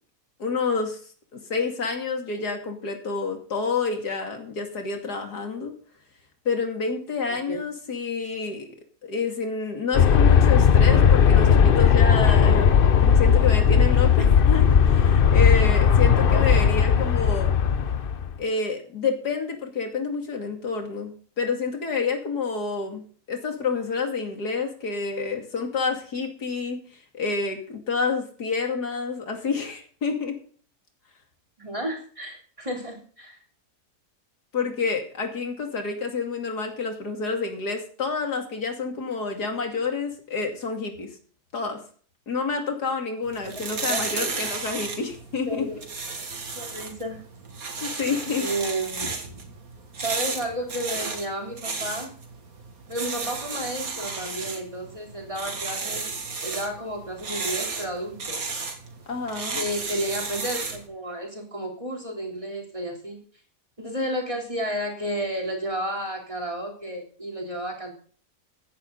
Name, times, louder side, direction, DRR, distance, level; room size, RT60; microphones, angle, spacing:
voice 1, 0.4-1.0 1.3-5.7 6.4-8.7 9.0-17.5 18.4-23.0 23.3-26.8 27.1-30.3 34.5-41.1 41.5-41.8 42.3-45.6 47.8-48.5 59.1-59.6, left 4 dB, 85° left, 4 dB, 3.1 m, -28 dB
Aircraft, 9.9-18.3, left 7 dB, 45° left, 0.8 m, -17 dB
voice 2, 31.6-33.4 43.4-44.0 45.5-45.8 46.6-47.2 48.4-49.3 50.0-52.1 52.9-56.1 56.4-58.5 59.5-63.2 63.8-68.0, right 1 dB, 20° right, 1 dB, 3.6 m, -32 dB
sound 1, 43.2-60.9, right 4 dB, 65° right, 2.5 m, -33 dB
15.5 x 10.5 x 4.0 m, 0.43 s
omnidirectional pair, 1.7 m